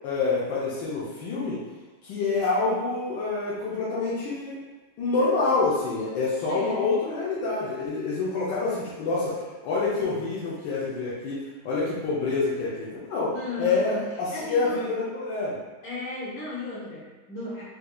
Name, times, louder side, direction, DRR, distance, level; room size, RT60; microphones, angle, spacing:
voice 1, 0.0-1.6 2.0-4.6 5.0-15.6, left 3 dB, 85° left, -8 dB, 1.3 m, -27 dB
voice 2, 6.5-6.9 13.3-14.0 14.3-14.9 15.8-17.6, left 2 dB, 60° left, -9 dB, 1.7 m, -35 dB
4.3 x 2.5 x 2.3 m, 1.2 s
omnidirectional pair, 1.9 m